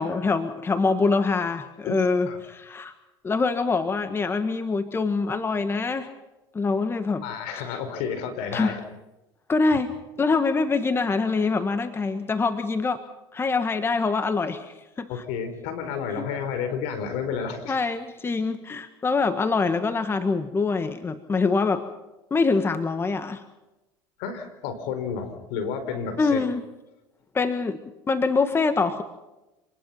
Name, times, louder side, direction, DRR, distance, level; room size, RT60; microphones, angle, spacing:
voice 1, 0.0-2.9 3.2-6.1 6.5-7.2 8.5-8.8 9.5-13.0 13.3-15.1 16.2-16.3 17.7-21.8 22.3-23.4 26.2-26.6 27.3-27.8 28.1-29.0, left 4 dB, 20° left, 10 dB, 1.6 m, -24 dB
voice 2, 1.8-2.4 7.2-8.8 15.1-17.8 24.2-26.4, left 6 dB, 65° left, 8 dB, 4.9 m, -31 dB
27.5 x 20.0 x 5.9 m, 1.0 s
hypercardioid pair, 90°, 11 cm